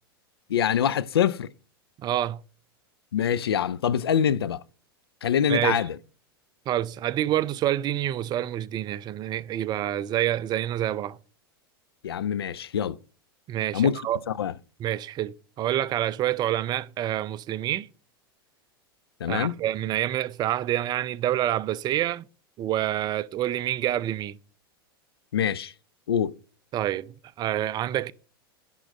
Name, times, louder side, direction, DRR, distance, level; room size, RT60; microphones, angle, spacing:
voice 1, 0.5-1.5 3.1-4.6 5.2-6.0 12.0-13.0 13.7-14.0 14.4-14.5 19.2-19.6 25.3-25.7 26.1-26.4, left 8 dB, 80° left, 0.5 m, -24 dB
voice 2, 2.0-2.4 5.5-5.8 6.7-11.2 13.5-14.2 14.8-17.9 19.3-22.3 22.6-24.4 26.7-28.1, right 12 dB, 35° right, 0.5 m, -27 dB
10.5 x 3.8 x 5.4 m
hypercardioid pair, 90°, 13 cm